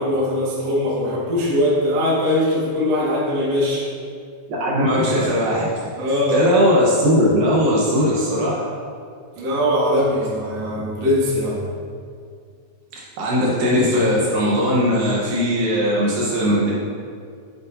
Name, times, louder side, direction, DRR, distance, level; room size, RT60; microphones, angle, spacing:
voice 1, 0.0-3.8 6.0-6.5 9.4-11.6, left 1 dB, 50° right, -6 dB, 2.4 m, -21 dB
voice 2, 4.6-5.7 6.3-8.6 13.2-16.7, equal, 75° right, -5 dB, 2.7 m, -18 dB
8.9 x 7.8 x 2.6 m, 2.2 s
omnidirectional pair, 4.2 m